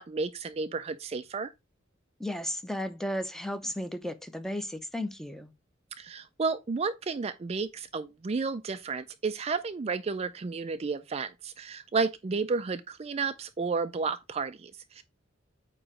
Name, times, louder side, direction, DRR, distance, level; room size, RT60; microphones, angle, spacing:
voice 1, 0.0-1.5 6.0-15.0, right 4 dB, 30° right, 0.4 m, -32 dB
voice 2, 2.2-5.5, left 1 dB, ahead, 0.7 m, -34 dB
8.7 x 3.0 x 4.9 m
head